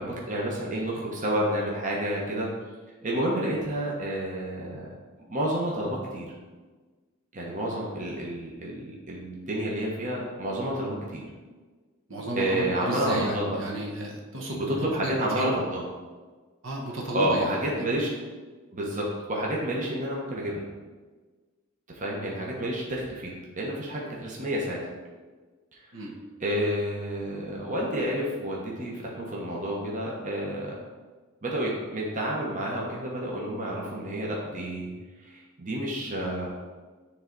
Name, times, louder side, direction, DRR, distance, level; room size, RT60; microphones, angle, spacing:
voice 1, 0.0-2.5 3.0-4.9 5.3-6.3 7.3-11.2 12.3-13.6 14.5-15.8 17.1-18.1 18.7-20.6 21.9-24.8 26.4-30.7 31.4-34.9 35.3-36.5, right 1 dB, 35° right, -3 dB, 1.1 m, -30 dB
voice 2, 12.1-15.5 16.6-17.9 25.9-26.1, right 1 dB, 65° right, -1 dB, 1.2 m, -33 dB
10.0 x 3.4 x 4.0 m, 1.4 s
head